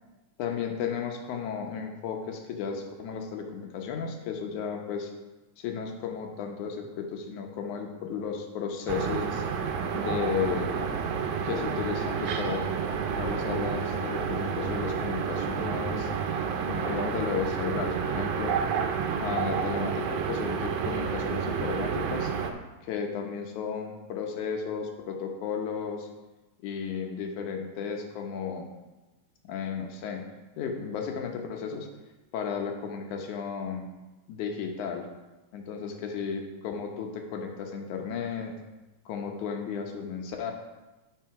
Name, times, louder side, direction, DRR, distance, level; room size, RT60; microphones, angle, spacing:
voice 1, 0.4-5.1 5.6-9.4 9.9-10.9 11.4-12.6 13.0-16.1 16.6-18.6 19.2-22.3 22.8-26.1 26.6-28.7 29.5-30.2 30.6-31.9 32.3-33.9 34.3-35.1 35.5-38.6 39.1-40.5, left 6 dB, 90° left, 3 dB, 2.4 m, -34 dB
sound 1, 8.9-22.5, right 6 dB, 85° right, 2.1 m, -30 dB
9.1 x 5.5 x 4.7 m, 1.1 s
omnidirectional pair, 3.3 m